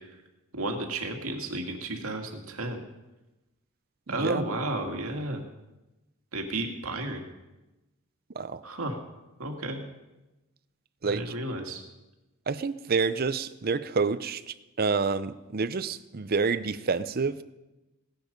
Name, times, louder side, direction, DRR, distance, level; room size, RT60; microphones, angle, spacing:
voice 1, 0.5-2.8 4.1-5.4 6.3-7.2 8.6-9.0 9.4-9.8 11.0-11.8, right 2 dB, 75° right, 4 dB, 2.1 m, -32 dB
voice 2, 4.1-4.4 5.3-5.4 8.4-8.6 11.0-11.2 12.5-14.4 14.8-17.4, right 4 dB, 45° right, 14 dB, 0.6 m, -28 dB
18.0 x 10.5 x 5.3 m, 1.0 s
head